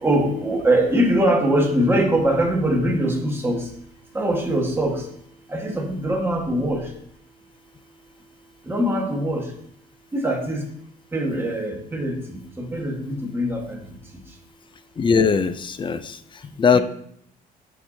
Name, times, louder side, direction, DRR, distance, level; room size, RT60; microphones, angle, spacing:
voice 1, 0.0-3.6 4.1-5.0 5.5-6.8 8.7-9.4 10.1-10.6 11.1-12.1 12.6-13.8 16.7-16.8, right 1 dB, 15° right, 0 dB, 1.5 m, -22 dB
voice 2, 15.0-16.2 16.6-16.8, left 5 dB, 30° left, 12 dB, 0.5 m, -19 dB
10.0 x 4.8 x 2.8 m, 0.69 s
cardioid pair, 110°, 17 cm